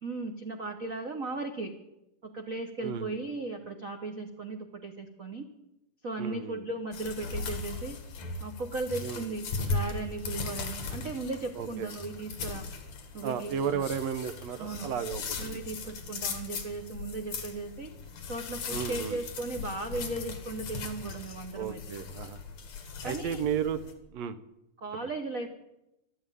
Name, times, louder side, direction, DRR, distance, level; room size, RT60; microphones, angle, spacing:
voice 1, 0.0-1.7 2.2-5.5 6.0-8.0 8.4-12.6 13.1-13.8 14.6-14.9 15.4-17.9 18.3-21.8 23.0-23.4 24.8-25.5, right 3 dB, 85° right, 5 dB, 0.7 m, -36 dB
voice 2, 2.8-3.1 6.2-6.6 9.0-9.3 11.6-11.9 13.2-15.6 15.8-15.9 18.7-19.2 21.6-22.4 23.0-23.8 24.1-24.4, right 8 dB, 70° right, 11 dB, 1.9 m, -33 dB
sound 1, 6.9-23.9, left 4 dB, 70° left, 3.2 m, -38 dB
13.0 x 12.0 x 9.2 m, 0.88 s
omnidirectional pair, 3.4 m